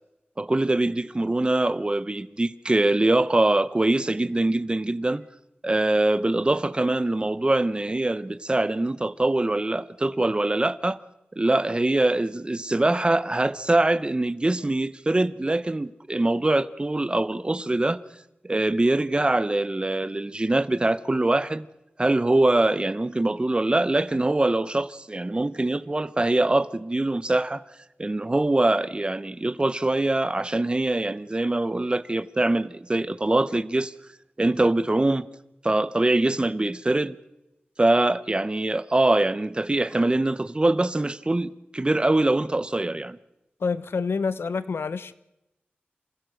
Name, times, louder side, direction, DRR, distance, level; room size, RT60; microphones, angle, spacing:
voice 1, 0.4-5.2 5.6-11.0 11.4-18.0 18.4-21.7 22.0-27.6 28.0-33.9 34.4-35.3 35.6-37.2 37.8-43.2, right 2 dB, 25° right, 0.8 m, -23 dB
voice 2, 43.6-45.1, left 5 dB, 90° left, 0.8 m, -27 dB
27.5 x 15.5 x 6.5 m
wide cardioid pair, 80°, 4 cm